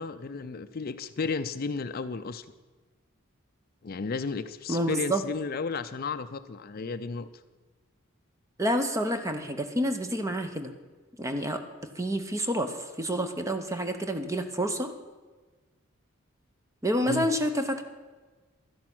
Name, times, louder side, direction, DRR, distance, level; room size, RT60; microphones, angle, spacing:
voice 1, 0.0-2.5 3.8-7.3 17.0-17.3, left 4 dB, 45° left, 11 dB, 0.5 m, -33 dB
voice 2, 4.7-5.2 8.6-10.7 11.2-11.6 11.9-14.9 16.8-17.8, equal, 15° right, 7 dB, 0.8 m, -28 dB
12.5 x 10.5 x 6.1 m, 1.3 s
head